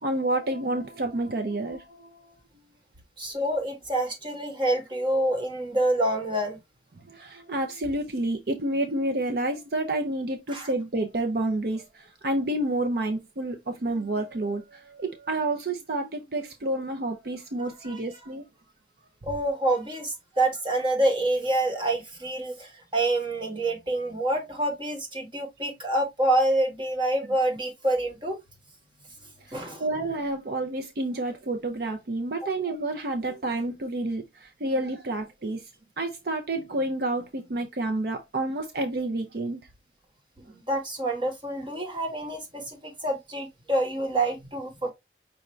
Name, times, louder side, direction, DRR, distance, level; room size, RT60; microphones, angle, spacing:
voice 1, 0.0-2.4 7.1-18.4 29.5-35.7 36.0-39.6, right 2 dB, 55° right, 0.6 m, -29 dB
voice 2, 3.2-6.6 10.5-10.7 17.6-18.0 19.2-28.4 29.5-29.8 40.4-44.9, right 1 dB, 25° right, 1.3 m, -27 dB
5.7 x 2.5 x 3.1 m
head